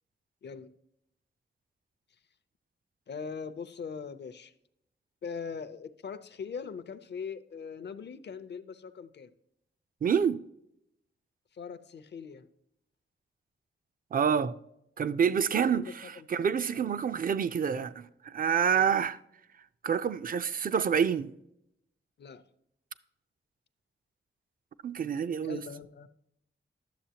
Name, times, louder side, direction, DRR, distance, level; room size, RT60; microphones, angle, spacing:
voice 1, 3.1-4.5 5.2-9.3 11.5-12.5 15.5-16.3 16.7-16.9 18.7-18.9 22.2-22.4 25.4-26.1, left 6 dB, 60° left, 0.6 m, -41 dB
voice 2, 10.0-10.4 14.1-14.6 15.0-19.2 19.8-21.3 24.8-25.6, right 7 dB, 45° right, 0.4 m, -28 dB
11.5 x 7.4 x 2.8 m
wide cardioid pair, 160°, 20 cm